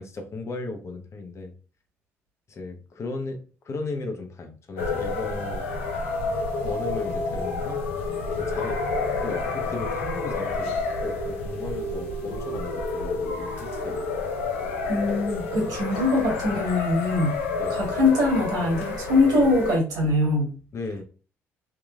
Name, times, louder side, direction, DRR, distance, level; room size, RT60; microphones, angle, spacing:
voice 1, 0.0-1.5 2.5-5.7 6.6-7.8 8.4-8.8 9.2-14.0 15.6-15.7 16.5-16.7 17.6-17.8 20.7-21.0, left 3 dB, 45° left, 5 dB, 0.9 m, -35 dB
sound 1, 4.8-19.8, left 3 dB, 85° left, 0.6 m, -29 dB
voice 2, 14.9-17.4 17.7-20.6, left 2 dB, 65° right, -1 dB, 1.8 m, -22 dB
3.6 x 3.1 x 2.5 m, 0.36 s
hypercardioid pair, 50°, 7 cm